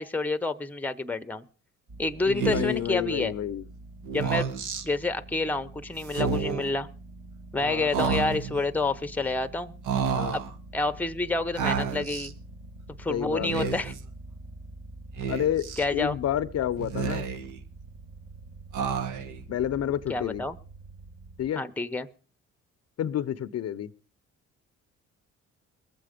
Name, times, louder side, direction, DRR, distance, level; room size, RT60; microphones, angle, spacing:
voice 1, 0.0-1.4 2.0-3.3 4.1-4.5 4.8-6.9 7.5-9.7 10.3-10.4 10.7-12.3 13.0-13.9 15.8-16.2 20.1-20.6 21.6-22.1, left 3 dB, 5° left, 10 dB, 0.7 m, -28 dB
sound 1, 1.9-21.5, right 2 dB, 55° right, 3.5 m, -46 dB
voice 2, 2.3-3.7 7.6-7.9 10.1-10.4 13.1-13.7 15.3-17.2 19.5-20.4 21.4-21.6 23.0-23.9, left 11 dB, 55° left, 15 dB, 0.6 m, -29 dB
Speech, 2.4-2.9 4.1-4.8 6.0-6.7 7.9-8.6 9.8-10.5 11.6-12.3 13.3-14.0 15.2-15.8 16.8-17.6 18.7-19.4, right 6 dB, 80° right, 1.1 m, -30 dB
20.5 x 7.6 x 5.0 m, 0.38 s
cardioid pair, 90°, 30 cm